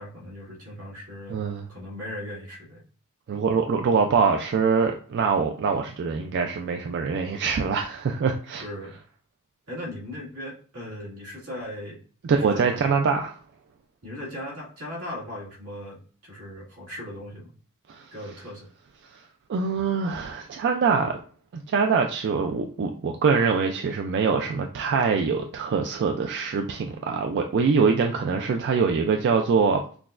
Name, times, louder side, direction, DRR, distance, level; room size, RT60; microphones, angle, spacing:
voice 1, 0.0-1.4 1.7-2.8 4.1-4.2 8.6-9.0 9.7-12.0 12.3-12.9 14.0-17.5 18.1-18.7 28.1-28.3, left 1 dB, 80° right, -4 dB, 1.8 m, -38 dB
voice 2, 1.3-1.7 3.3-8.6 12.2-13.4 17.9-18.1 19.1-19.2 19.5-21.2 21.5-29.8, right 5 dB, 50° right, 4 dB, 0.3 m, -24 dB
5.9 x 2.2 x 2.4 m, 0.43 s
head